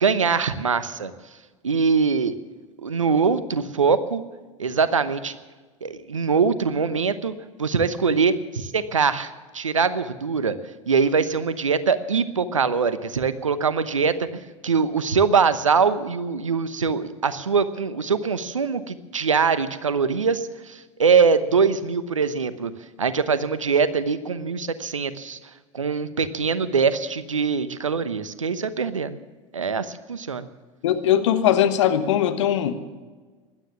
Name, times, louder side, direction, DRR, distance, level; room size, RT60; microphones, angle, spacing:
voice 1, 0.0-1.1 1.6-2.3 2.8-4.2 4.6-5.4 5.8-7.3 7.6-10.6 10.9-22.7 23.0-25.4 25.7-29.2 29.5-30.4, right 5 dB, 90° right, 13 dB, 1.0 m, -23 dB
voice 2, 30.8-32.7, left 10 dB, 70° left, 9 dB, 1.3 m, -20 dB
16.5 x 12.0 x 7.2 m, 1.3 s
hypercardioid pair, 80°, 16 cm